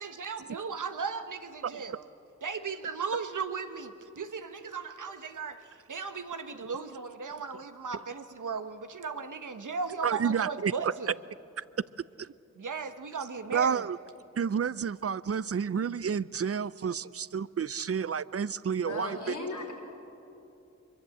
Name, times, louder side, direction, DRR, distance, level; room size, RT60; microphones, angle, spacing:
voice 1, 0.0-2.1 2.4-11.1 12.5-13.9, right 5 dB, 85° right, 8 dB, 1.2 m, -36 dB
voice 2, 1.6-2.0 10.0-10.9 11.6-11.7 12.2-12.3 13.5-14.0 14.4-19.3, right 7 dB, 50° right, 19 dB, 0.5 m, -30 dB
voice 3, 18.8-19.7, left 3 dB, 90° left, -1 dB, 3.5 m, -36 dB
24.0 x 22.0 x 7.8 m, 2.9 s
cardioid pair, 40°, 30 cm